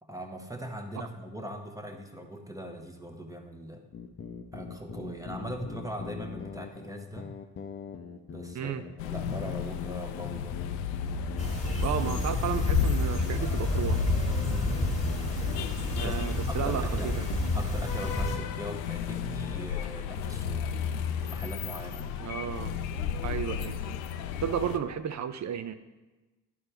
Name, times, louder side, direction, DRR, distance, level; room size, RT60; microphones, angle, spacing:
voice 1, 0.0-3.8 4.5-7.3 8.3-8.7 9.0-10.7 14.4-14.8 16.0-17.1 17.5-20.7 21.2-22.2, equal, 5° right, 3 dB, 1.1 m, -40 dB
sound 1, 3.9-17.5, left 6 dB, 30° left, 0.7 m, -42 dB
sound 2, 9.0-24.8, left 8 dB, 85° left, 0.6 m, -33 dB
sound 3, 11.4-18.4, left 1 dB, 15° left, 1.8 m, -30 dB
voice 2, 11.8-14.0 16.0-17.3 22.2-22.7 23.2-23.8 24.4-25.7, right 8 dB, 35° right, 11 dB, 0.7 m, -33 dB
11.0 x 4.5 x 3.4 m, 1.1 s
hypercardioid pair, 60°, 48 cm